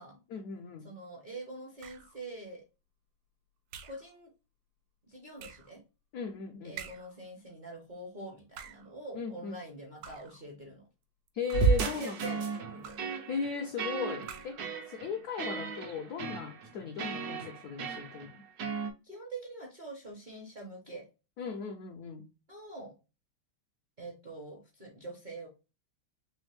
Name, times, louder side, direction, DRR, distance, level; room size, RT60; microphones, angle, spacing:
voice 1, 0.3-0.9 6.1-6.8 9.1-9.6 11.3-12.4 13.3-18.4 21.4-22.3, left 6 dB, 75° left, 0.8 m, -37 dB
voice 2, 0.8-2.6 3.8-4.3 5.1-5.8 6.6-10.9 11.6-13.0 19.0-21.1 22.5-22.9 24.0-25.5, right 2 dB, 40° right, 0.7 m, -45 dB
sound 1, 1.8-2.2 3.7-4.1 5.4-5.7 6.8-7.2 8.4-8.9 10.0-10.4 11.3-11.9 12.8-13.2 14.2-14.7, right 8 dB, 85° right, 1.5 m, -48 dB
sound 2, 11.5-18.9, right 5 dB, 60° right, 1.1 m, -33 dB
3.4 x 3.1 x 3.3 m
omnidirectional pair, 2.3 m